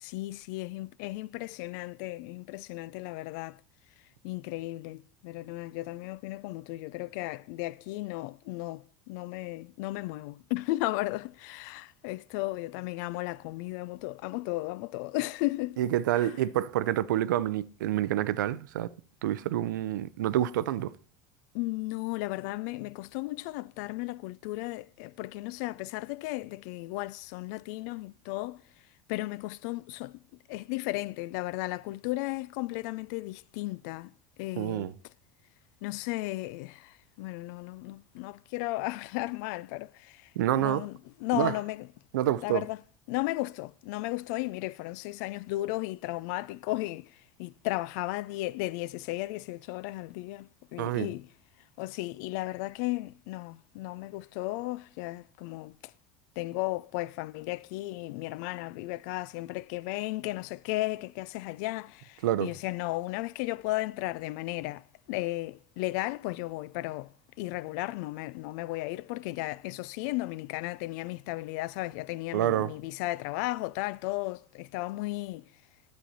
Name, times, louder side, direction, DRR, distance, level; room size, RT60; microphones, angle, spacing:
voice 1, 0.0-3.6 4.2-15.8 16.2-16.3 21.5-28.6 29.1-30.1 30.5-34.1 34.4-34.9 35.8-41.9 42.2-42.8 43.1-47.1 47.4-51.3 51.8-55.9 56.4-67.1 67.4-75.5, left 19 dB, 70° left, 0.4 m, -35 dB
voice 2, 15.8-18.9 19.2-20.9 34.6-34.9 40.4-40.8 41.3-41.5 42.1-42.6 50.8-51.1 62.2-62.5 72.3-72.7, right 13 dB, 85° right, 0.5 m, -28 dB
10.0 x 7.4 x 4.1 m
supercardioid pair, 100°, 10 cm